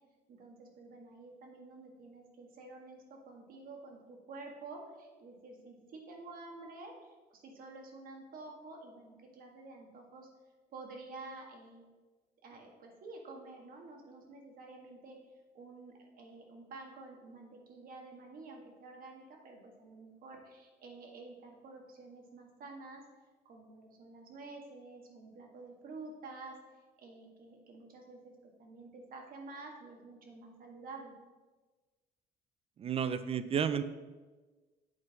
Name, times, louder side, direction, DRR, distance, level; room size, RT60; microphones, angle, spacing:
voice 1, 0.3-10.3 10.7-11.8 12.4-15.2 15.5-23.0 23.4-26.6 27.0-31.1, right 3 dB, 60° right, 1 dB, 1.6 m, -50 dB
voice 2, 32.8-33.8, right 7 dB, 35° right, 12 dB, 0.4 m, -31 dB
7.7 x 3.9 x 5.3 m, 1.3 s
cardioid pair, 110°, 17 cm